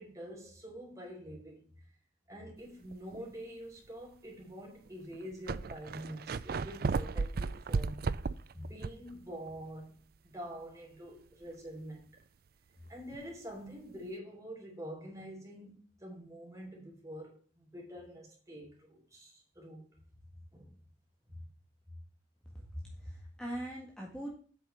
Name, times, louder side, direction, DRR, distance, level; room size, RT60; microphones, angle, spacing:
voice 1, 0.0-1.7 2.3-8.1 8.5-12.1 12.9-19.8 20.5-20.7 21.3-21.4, equal, 20° right, 4.1 m, -46 dB
sound 1, 2.9-3.2 3.9-4.0 4.9-5.0 5.1-9.1 9.5-9.6 13.1-13.2, right 4 dB, 55° right, 0.4 m, -34 dB
voice 2, 22.7-24.3, right 1 dB, 5° left, 1.8 m, -41 dB
8.4 x 6.2 x 5.7 m
head